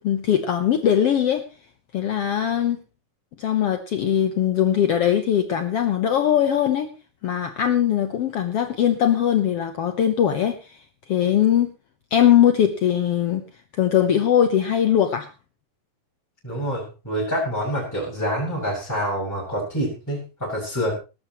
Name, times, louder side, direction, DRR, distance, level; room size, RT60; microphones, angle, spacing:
voice 1, 0.0-1.4 1.9-2.8 3.4-6.9 7.2-11.7 12.1-13.5 13.7-15.3, left 10 dB, 85° left, 8 dB, 1.3 m, -21 dB
voice 2, 16.4-20.9, equal, 5° left, -6 dB, 6.6 m, -27 dB
19.0 x 13.5 x 3.1 m, 0.30 s
omnidirectional pair, 4.1 m